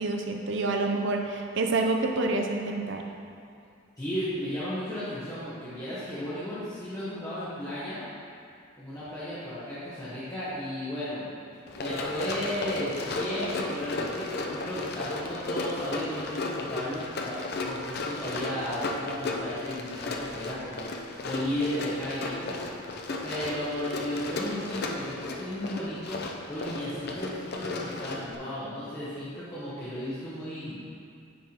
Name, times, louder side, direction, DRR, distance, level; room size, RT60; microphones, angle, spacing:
voice 1, 0.0-3.1, right 2 dB, 60° right, 3 dB, 0.6 m, -28 dB
voice 2, 4.0-8.0 8.8-22.9 23.2-26.2 26.5-30.8, equal, 15° left, -13 dB, 1.2 m, -34 dB
Run, 11.7-28.4, left 2 dB, 50° left, 0.5 m, -34 dB
9.5 x 3.6 x 4.4 m, 2.4 s
head